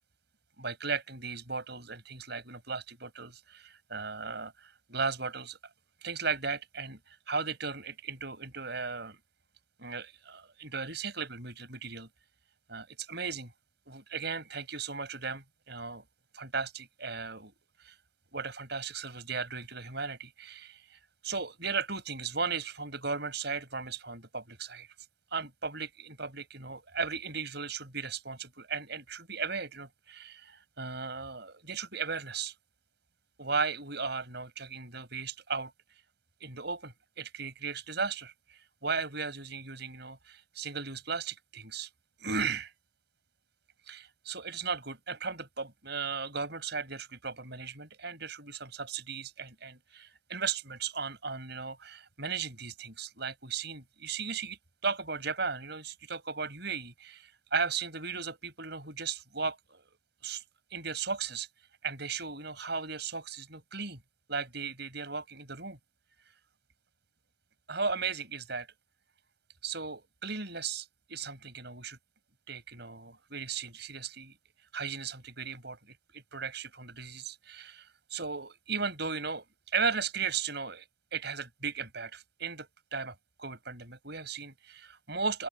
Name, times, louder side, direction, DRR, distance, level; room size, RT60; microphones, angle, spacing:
voice 1, 0.6-5.6 6.0-9.2 9.8-12.1 12.7-13.5 13.9-16.0 16.3-17.5 17.8-17.9 18.3-24.9 25.3-32.5 33.4-35.7 36.4-41.9 42.2-42.7 43.9-54.6 54.8-59.8 60.2-60.4 60.7-61.5 61.8-64.0 64.3-65.8 67.7-68.7 69.6-72.0 72.5-74.3 74.7-79.4 79.7-80.8 81.1-85.5, right 5 dB, 55° right, 7.2 m, -36 dB
open air
head